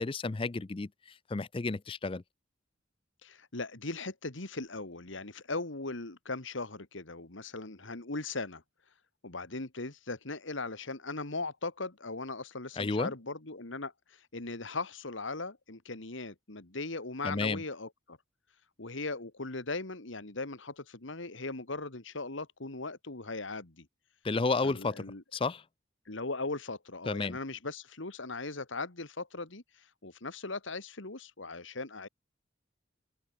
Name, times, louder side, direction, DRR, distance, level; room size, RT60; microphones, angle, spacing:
voice 1, 0.0-2.2 12.8-13.1 17.2-17.6 24.2-25.1 25.3-25.6 27.1-27.4, left 3 dB, 25° left, 0.4 m, -32 dB
voice 2, 3.2-8.6 9.2-18.2 18.8-23.9 24.6-25.2 26.1-32.1, left 3 dB, 75° left, 2.1 m, -39 dB
open air
head